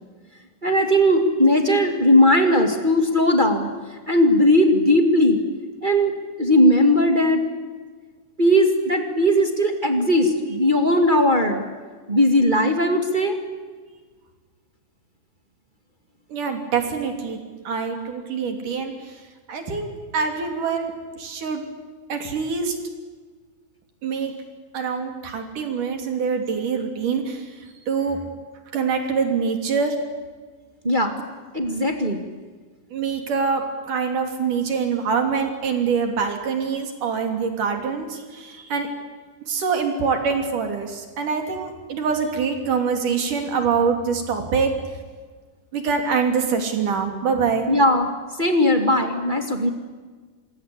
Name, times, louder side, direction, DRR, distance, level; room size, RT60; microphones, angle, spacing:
voice 1, 0.6-3.7 4.1-5.4 5.8-6.1 6.4-7.4 8.4-11.6 12.1-13.4 30.8-31.2 31.5-32.2 47.7-48.1 48.4-49.7, left 1 dB, 20° right, 4 dB, 1.8 m, -18 dB
voice 2, 16.3-19.1 19.5-21.6 22.1-22.8 24.0-24.3 24.7-28.2 28.7-30.0 32.9-38.9 39.5-44.7 45.7-47.7, right 5 dB, 70° right, 5 dB, 4.5 m, -25 dB
27.0 x 22.0 x 8.5 m, 1.5 s
omnidirectional pair, 3.8 m